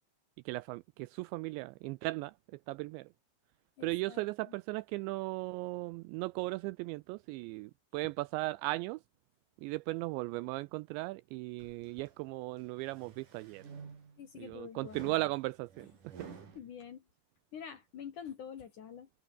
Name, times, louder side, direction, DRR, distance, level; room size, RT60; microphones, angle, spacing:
voice 1, 0.5-2.3 2.7-3.1 3.8-9.0 9.6-13.6 14.4-15.9, right 21 dB, 85° right, 2.6 m, -37 dB
voice 2, 3.8-4.6 14.2-15.1 16.6-17.0 17.5-19.1, left 8 dB, 55° left, 2.4 m, -47 dB
sound 1, 11.6-12.1 12.7-14.3 14.9-16.6, right 5 dB, 45° right, 5.4 m, -51 dB
omnidirectional pair, 5.6 m